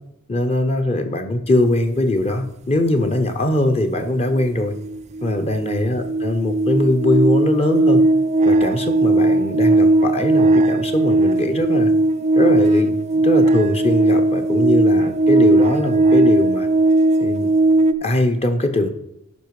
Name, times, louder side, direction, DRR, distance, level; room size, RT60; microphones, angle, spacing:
voice 1, 0.3-4.8 5.2-8.0 8.4-11.9 12.3-16.7 17.2-17.5 18.0-18.9, left 1 dB, 30° left, 6 dB, 0.7 m, -21 dB
sound 1, 4.4-4.5 4.7-17.9, right 2 dB, 30° right, 0.4 m, -17 dB
11.0 x 5.1 x 4.7 m, 0.82 s
head